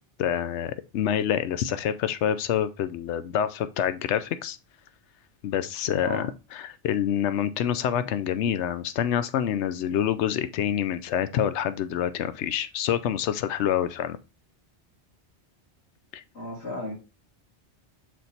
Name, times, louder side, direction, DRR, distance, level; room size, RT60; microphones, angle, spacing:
voice 1, 0.2-4.6 5.4-14.2 16.1-16.2, left 9 dB, 90° left, 0.9 m, -27 dB
voice 2, 16.3-16.9, left 1 dB, 70° left, 2.9 m, -34 dB
6.5 x 4.0 x 4.1 m
omnidirectional pair, 1.1 m